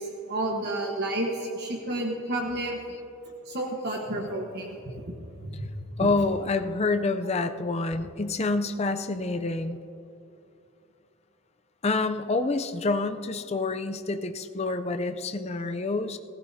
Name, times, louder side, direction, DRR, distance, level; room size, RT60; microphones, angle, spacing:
voice 1, 0.0-2.8 3.5-4.8 5.4-5.7 6.0-6.1, right 1 dB, 50° right, 0 dB, 1.3 m, -31 dB
voice 2, 6.0-9.8 11.8-16.2, left 3 dB, 30° left, 8 dB, 0.5 m, -27 dB
18.5 x 16.0 x 2.8 m, 2.8 s
head